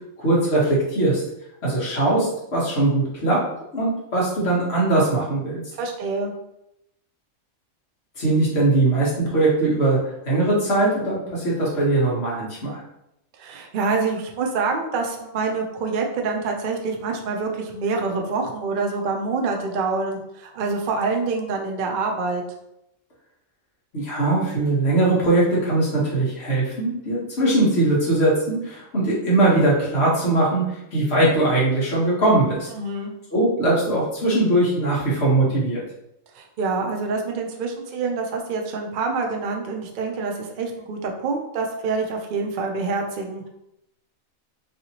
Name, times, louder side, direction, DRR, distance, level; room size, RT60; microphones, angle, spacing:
voice 1, 0.2-1.2 1.6-3.4 3.7-5.6 8.2-12.8 23.9-32.7 33.3-35.8, right 2 dB, 50° left, -5 dB, 1.3 m, -20 dB
voice 2, 5.8-6.3 13.4-22.4 32.7-33.1 36.3-43.5, right 4 dB, 70° right, 2 dB, 0.4 m, -26 dB
3.2 x 2.8 x 2.8 m, 0.83 s
omnidirectional pair, 1.4 m